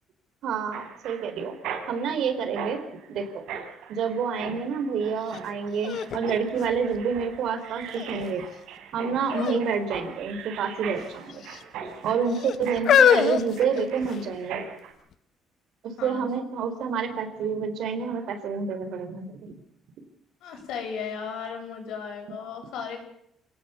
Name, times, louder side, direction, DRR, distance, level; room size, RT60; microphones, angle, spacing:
voice 1, 0.4-1.5 1.9-2.8 3.1-3.4 3.9-8.4 8.9-11.4 12.0-14.7 15.8-19.5, right 6 dB, 65° right, 8 dB, 4.2 m, -28 dB
Mechanisms, 0.7-14.9, right 7 dB, 85° right, 4.5 m, -40 dB
sound 1, 5.3-5.4 5.8-7.4 8.0-8.5 9.3-9.7 9.9-10.1 11.0-11.6 12.3-14.4 15.1-15.2, left 9 dB, 55° left, 1.4 m, -24 dB
voice 2, 16.0-16.3 20.4-23.0, left 6 dB, 75° left, 4 dB, 7.6 m, -35 dB
27.5 x 18.0 x 7.0 m, 0.75 s
cardioid pair, 125°, 0 cm